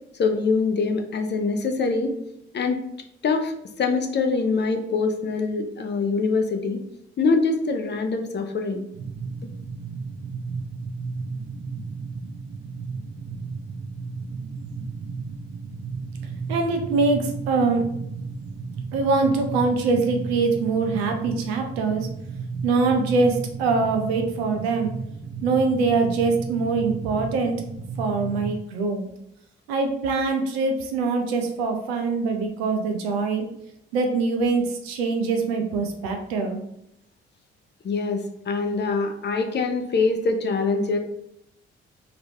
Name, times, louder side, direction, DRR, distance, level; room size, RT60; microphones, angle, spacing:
voice 1, 0.2-2.1 2.5-2.8 3.2-6.8 7.2-8.9 37.8-41.0, left 4 dB, 35° left, 5 dB, 0.6 m, -24 dB
sound 1, 8.9-28.5, right 4 dB, 45° right, 0.9 m, -34 dB
voice 2, 16.5-17.8 18.9-22.1 22.6-24.9 25.4-27.6 28.0-29.1 29.7-33.5 33.9-36.6, right 4 dB, 75° right, 4 dB, 0.6 m, -23 dB
3.9 x 2.9 x 2.8 m, 0.78 s
figure-of-eight pair, 40°, 31 cm